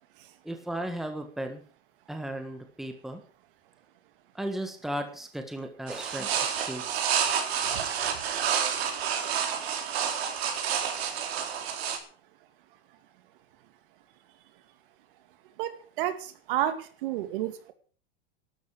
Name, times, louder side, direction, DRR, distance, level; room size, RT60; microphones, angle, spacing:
voice 1, 0.4-1.6 2.1-3.2 4.3-7.1, right 1 dB, ahead, 5 dB, 1.6 m, -36 dB
sound 1, 5.9-12.0, right 8 dB, 85° right, 4.4 m, -29 dB
voice 2, 15.6-17.7, right 11 dB, 60° right, 10 dB, 2.4 m, -31 dB
12.5 x 11.0 x 8.4 m, 0.43 s
supercardioid pair, 165°, 30 cm